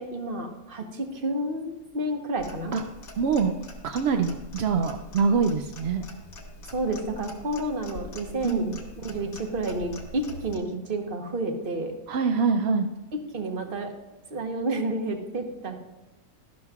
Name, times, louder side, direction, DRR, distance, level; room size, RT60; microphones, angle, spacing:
voice 1, 0.0-2.7 6.7-8.7 9.0-11.9 13.3-13.9 14.3-15.8, right 2 dB, 40° right, 4 dB, 1.1 m, -30 dB
Clock, 2.4-10.6, left 2 dB, 80° left, 1.7 m, -44 dB
voice 2, 3.2-3.5 3.8-6.0 8.4-8.8 12.1-12.9, right 5 dB, 65° right, 6 dB, 0.6 m, -24 dB
12.0 x 11.5 x 2.4 m, 1.0 s
omnidirectional pair, 1.5 m